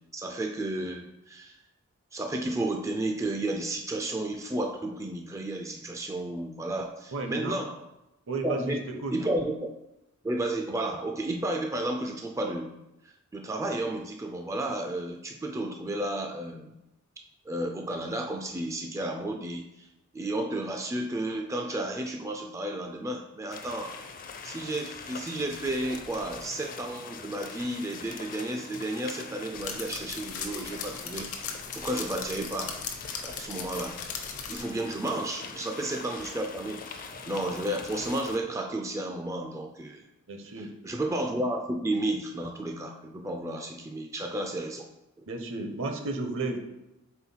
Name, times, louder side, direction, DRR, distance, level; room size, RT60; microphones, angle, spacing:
voice 1, 0.1-1.6 2.1-7.8 8.4-9.7 10.2-12.7 13.0-16.7 17.5-19.9 20.1-23.9 24.4-32.8 33.2-34.0 34.5-40.1 40.5-44.9 45.2-45.3, right 1 dB, 15° right, 3 dB, 0.3 m, -32 dB
voice 2, 7.1-7.6 8.3-9.1 40.3-40.7 45.3-46.6, right 3 dB, 60° right, 5 dB, 0.8 m, -33 dB
sound 1, 23.5-38.4, left 5 dB, 40° left, 0.5 m, -43 dB
sound 2, 25.5-26.4 29.5-34.6, left 6 dB, 70° left, 0.8 m, -39 dB
4.4 x 3.9 x 5.5 m, 0.91 s
head